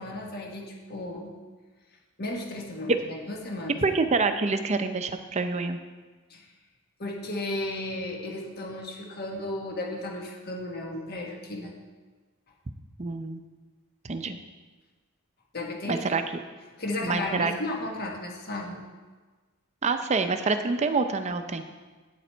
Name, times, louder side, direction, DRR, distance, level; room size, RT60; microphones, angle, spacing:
voice 1, 0.0-1.3 2.2-3.8 6.3-6.5 7.0-11.7 15.5-16.1 16.8-18.8, left 1 dB, 45° left, 0 dB, 1.4 m, -34 dB
voice 2, 3.8-5.8 13.0-13.4 14.0-14.4 15.9-16.2 17.0-17.5 19.8-21.6, right 4 dB, 30° right, 8 dB, 0.5 m, -26 dB
9.0 x 7.9 x 4.4 m, 1.3 s
head